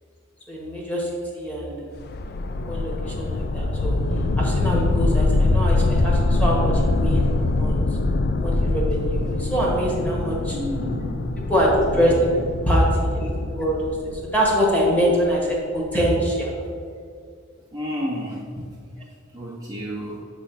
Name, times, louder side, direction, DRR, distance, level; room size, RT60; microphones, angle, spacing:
voice 1, 0.5-1.9 2.7-4.0 4.4-7.8 8.4-10.6 11.5-12.4 12.6-16.5, equal, 5° left, -3 dB, 1.3 m, -24 dB
sound 1, 2.0-15.1, left 2 dB, 50° left, 0.4 m, -23 dB
voice 2, 10.5-11.3 11.9-12.0 17.7-18.7 19.3-20.2, equal, 15° right, -6 dB, 0.8 m, -31 dB
7.4 x 3.3 x 5.8 m, 2.2 s
head